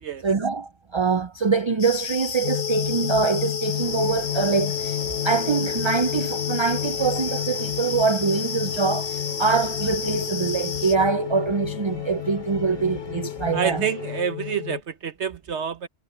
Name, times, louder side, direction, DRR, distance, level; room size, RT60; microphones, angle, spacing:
voice 1, 0.2-13.8, right 5 dB, 45° right, 0.4 m, -24 dB
sound 1, 1.8-10.9, left 5 dB, 40° left, 0.8 m, -32 dB
sound 2, 2.4-14.8, left 14 dB, 55° left, 1.2 m, -31 dB
sound 3, 3.6-14.2, left 3 dB, 90° left, 3.2 m, -41 dB
voice 2, 13.5-15.9, right 7 dB, 70° right, 1.2 m, -28 dB
omnidirectional pair, 1.2 m